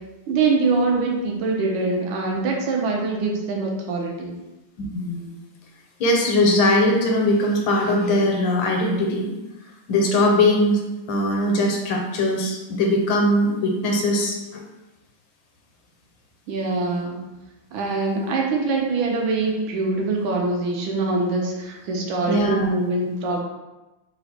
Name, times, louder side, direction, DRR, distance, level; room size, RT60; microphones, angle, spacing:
voice 1, 0.3-4.4 16.5-17.2 17.7-23.4, right 3 dB, 85° right, 0 dB, 1.5 m, -23 dB
voice 2, 4.8-5.3 6.0-9.3 9.9-10.8 11.1-14.6 22.3-22.7, left 1 dB, 75° left, 1 dB, 1.4 m, -20 dB
3.9 x 2.0 x 4.2 m, 1.0 s
omnidirectional pair, 2.1 m